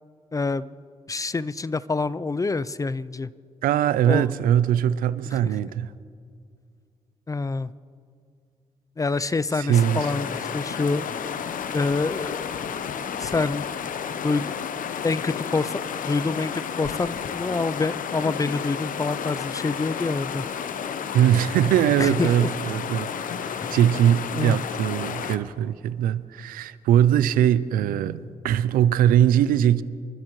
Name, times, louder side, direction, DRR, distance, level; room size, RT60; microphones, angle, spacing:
voice 1, 0.3-0.7 1.1-3.3 4.1-4.3 7.3-7.7 9.0-11.0 11.7-12.5 13.2-13.7 14.2-14.5 15.0-20.5 22.0-22.5 23.6-23.8 24.4-24.6, left 3 dB, 25° left, 0.5 m, -26 dB
voice 2, 3.6-5.9 9.5-10.1 21.1-23.1 23.4-29.8, right 10 dB, 85° right, 0.5 m, -21 dB
sound 1, 9.7-25.4, left 7 dB, 70° left, 0.8 m, -31 dB
26.5 x 13.0 x 3.2 m
supercardioid pair, 55°, 14 cm